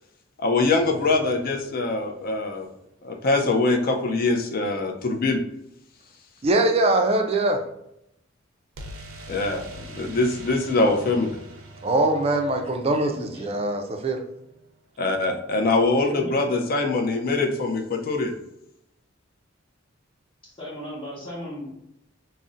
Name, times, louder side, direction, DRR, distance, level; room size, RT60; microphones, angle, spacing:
voice 1, 0.4-2.7 3.0-5.4 9.3-9.6 10.0-11.4 15.0-18.3, left 3 dB, 45° left, 4 dB, 0.4 m, -23 dB
sound 1, 0.6-2.7 8.8-14.5, right 1 dB, 90° right, 0.5 m, -44 dB
voice 2, 6.4-7.7 11.8-14.2, right 2 dB, 30° right, 5 dB, 0.3 m, -22 dB
voice 3, 13.0-13.6 16.1-16.3 20.4-21.7, equal, 25° left, -10 dB, 0.8 m, -37 dB
2.5 x 2.0 x 3.7 m, 0.79 s
head